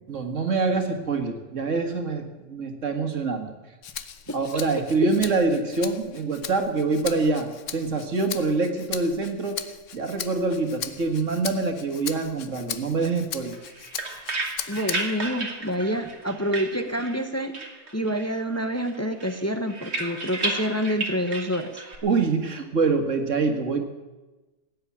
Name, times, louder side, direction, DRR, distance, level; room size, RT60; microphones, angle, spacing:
voice 1, 0.1-3.5 4.3-9.6 9.9-13.6 22.0-23.8, right 3 dB, 90° right, 5 dB, 2.1 m, -25 dB
Rattle (instrument), 3.8-15.3 15.7-16.9, left 8 dB, 90° left, 1.2 m, -38 dB
sound 1, 13.5-17.3 17.5-18.4 18.7-22.0, right 2 dB, 60° right, 2.3 m, -33 dB
voice 2, 14.7-17.5 17.9-21.8, equal, 15° left, 7 dB, 0.9 m, -27 dB
16.0 x 9.7 x 8.6 m, 1.2 s
omnidirectional pair, 1.3 m